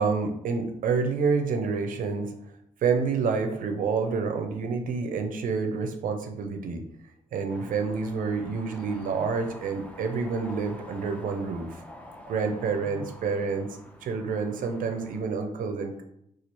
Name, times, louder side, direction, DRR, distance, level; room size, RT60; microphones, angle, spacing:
voice 1, 0.0-2.3 2.8-6.8 7.3-11.8 12.3-13.7 14.0-16.0, right 5 dB, 75° right, 5 dB, 0.5 m, -28 dB
sound 1, 7.5-15.2, equal, 10° left, 0.6 m, -47 dB
2.9 x 2.4 x 4.2 m, 0.75 s
cardioid pair, 75°, 14 cm